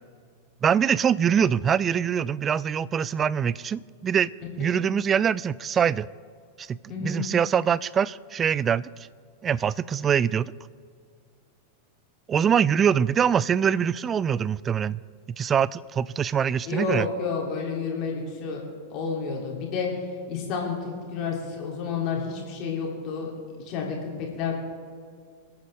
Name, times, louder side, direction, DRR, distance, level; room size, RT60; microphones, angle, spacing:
voice 1, 0.6-4.3 4.6-6.1 6.6-8.9 9.4-10.5 12.3-15.0 15.4-17.1, right 8 dB, 25° right, 20 dB, 0.3 m, -23 dB
voice 2, 6.9-7.3 16.6-18.6 18.9-19.9 20.3-23.3 23.7-24.5, left 5 dB, 40° left, -1 dB, 3.4 m, -30 dB
26.0 x 9.1 x 3.7 m, 2.1 s
figure-of-eight pair, 90°, 0 cm